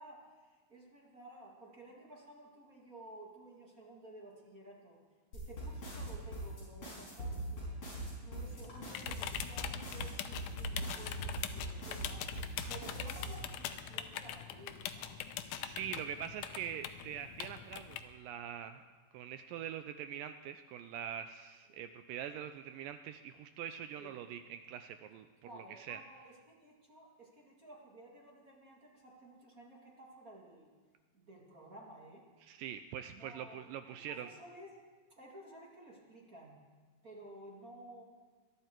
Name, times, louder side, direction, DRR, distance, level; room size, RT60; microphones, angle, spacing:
voice 1, 0.0-5.0 5.3-7.7 8.2-15.2 21.7-21.9 24.0-24.2 25.4-30.7 31.1-32.2 33.1-34.7 35.2-36.6 37.0-38.0, right 1 dB, 30° right, -2 dB, 1.7 m, -54 dB
sound 1, 5.3-13.3, right 1 dB, 40° left, 6.3 m, -41 dB
sound 2, 8.5-18.0, left 10 dB, 80° left, 1.8 m, -43 dB
voice 2, 15.6-18.8 19.1-25.3 25.5-26.0 32.4-34.3, right 9 dB, 85° right, 9 dB, 2.0 m, -44 dB
21.5 x 12.5 x 4.5 m, 1.5 s
omnidirectional pair, 4.4 m